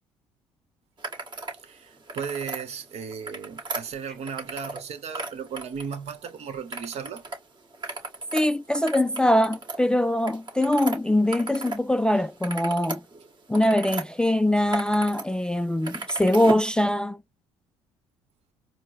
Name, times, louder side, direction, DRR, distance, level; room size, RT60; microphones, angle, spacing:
sound 1, 1.0-1.6 1.9-2.6 3.1-4.8 5.1-6.3 6.7-7.4 7.7-11.8 12.1-14.0 14.5-15.2 15.5-16.7, right 3 dB, 35° right, 1.9 m, -36 dB
voice 1, 1.6-7.3, right 6 dB, 55° right, 1.2 m, -35 dB
voice 2, 8.3-13.0 13.5-17.2, left 1 dB, 5° left, 0.4 m, -23 dB
4.4 x 2.1 x 2.6 m
supercardioid pair, 65°, 13 cm